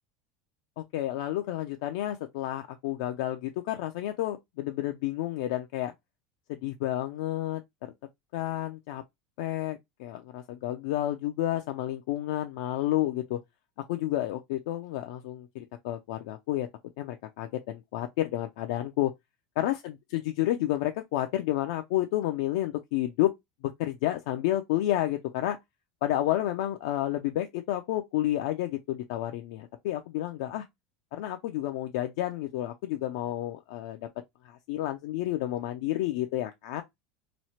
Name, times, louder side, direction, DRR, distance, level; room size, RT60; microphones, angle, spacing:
voice 1, 0.8-5.9 6.5-7.6 8.3-9.0 9.4-13.4 13.9-16.7 17.0-19.1 19.6-23.3 23.8-25.6 26.0-30.7 31.1-34.1 34.4-36.8, left 14 dB, 70° left, 0.4 m, -30 dB
3.0 x 2.0 x 2.8 m
supercardioid pair, 145°, 3 cm